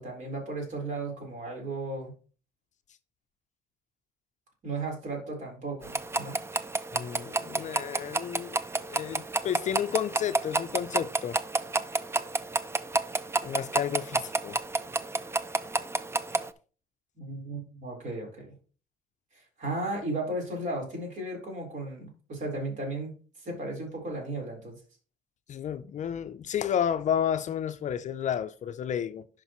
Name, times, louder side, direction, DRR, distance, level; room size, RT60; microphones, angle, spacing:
voice 1, 0.0-2.1 4.6-6.4 17.2-18.5 19.3-23.1 23.4-24.8, right 2 dB, 45° right, 4.0 m, -35 dB
sound 1, 5.8-16.5, right 2 dB, 15° right, 0.5 m, -31 dB
voice 2, 6.9-11.4 13.4-14.6 25.5-29.3, left 9 dB, 45° left, 0.5 m, -31 dB
11.0 x 5.2 x 3.0 m
cardioid pair, 110°, 17 cm